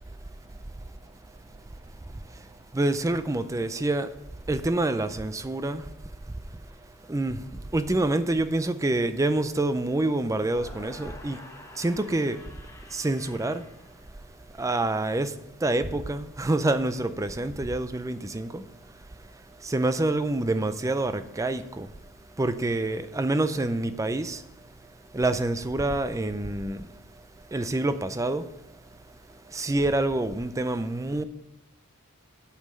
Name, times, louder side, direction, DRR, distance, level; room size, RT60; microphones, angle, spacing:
voice 1, 2.7-4.1 4.5-5.9 6.3-6.4 7.1-11.4 11.8-12.5 12.9-13.6 14.6-18.6 19.6-21.9 22.4-24.4 25.1-26.9 27.5-28.5 29.5-31.2, right 2 dB, 15° right, 0.4 m, -27 dB
sound 1, 10.4-14.6, left 2 dB, 15° left, 1.0 m, -48 dB
8.2 x 5.5 x 7.6 m
head